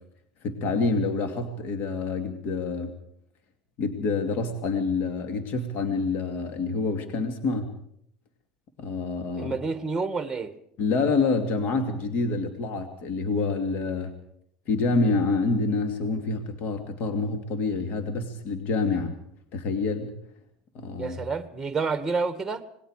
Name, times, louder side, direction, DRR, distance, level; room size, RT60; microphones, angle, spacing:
voice 1, 0.4-2.9 3.8-7.7 8.8-9.6 10.8-14.1 14.7-19.1 19.5-20.1 20.7-21.2, left 3 dB, 55° left, 6 dB, 2.7 m, -27 dB
voice 2, 9.4-10.5 21.0-22.6, right 4 dB, 10° right, 10 dB, 1.9 m, -29 dB
26.5 x 20.0 x 5.0 m, 0.71 s
supercardioid pair, 100°, 4 cm